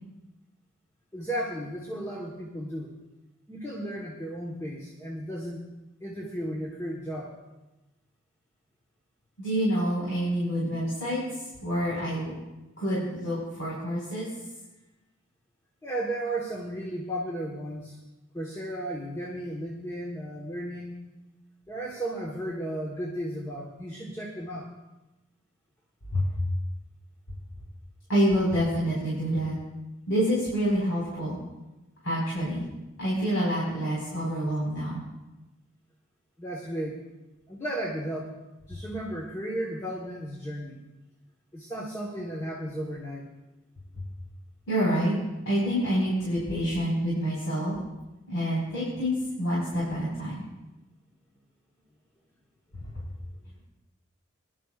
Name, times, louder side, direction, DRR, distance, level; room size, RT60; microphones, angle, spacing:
voice 1, 1.1-2.9 3.5-5.6 6.0-7.3 15.8-18.0 18.3-21.0 21.7-24.7 36.4-37.0 37.5-38.3 38.7-40.8 41.5-43.2 52.8-52.9 53.4-53.7, right 1 dB, 15° left, -3 dB, 1.3 m, -34 dB
voice 2, 9.4-11.2 11.6-12.3 12.8-14.3 26.1-26.3 28.1-29.6 30.1-31.4 32.0-32.6 33.0-35.0 44.7-45.1 45.4-47.8 48.3-50.4 52.7-52.8, equal, 75° left, -8 dB, 5.1 m, -27 dB
21.0 x 12.0 x 2.5 m, 1.0 s
head